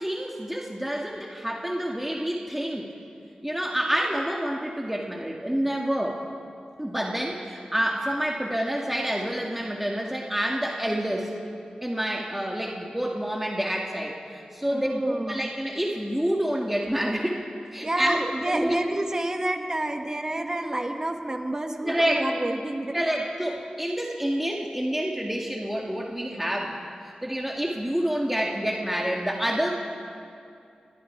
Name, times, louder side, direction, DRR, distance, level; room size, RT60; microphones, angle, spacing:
voice 1, 0.0-2.9 3.4-6.2 6.8-11.4 11.8-17.4 17.7-18.2 18.5-18.8 21.8-22.2 22.9-26.8 27.2-29.7, equal, 5° right, -1 dB, 2.1 m, -28 dB
voice 2, 14.7-15.5 17.8-23.0, right 1 dB, 25° right, 3 dB, 2.1 m, -29 dB
30.0 x 22.5 x 4.7 m, 2.5 s
wide cardioid pair, 90°, 3 cm